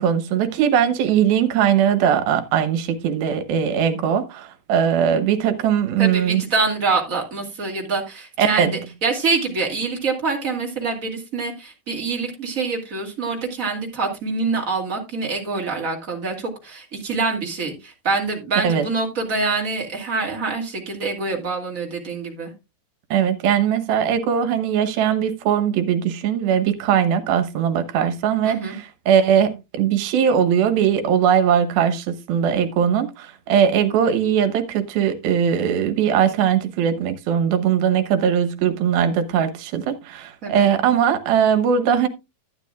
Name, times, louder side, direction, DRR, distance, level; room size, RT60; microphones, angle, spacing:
voice 1, 0.0-6.4 8.4-8.7 18.6-18.9 23.1-42.1, right 8 dB, 75° right, 2.9 m, -20 dB
voice 2, 6.0-22.5 28.4-28.8 40.4-40.7, right 4 dB, 25° right, 2.2 m, -25 dB
12.0 x 9.8 x 2.4 m
omnidirectional pair, 4.3 m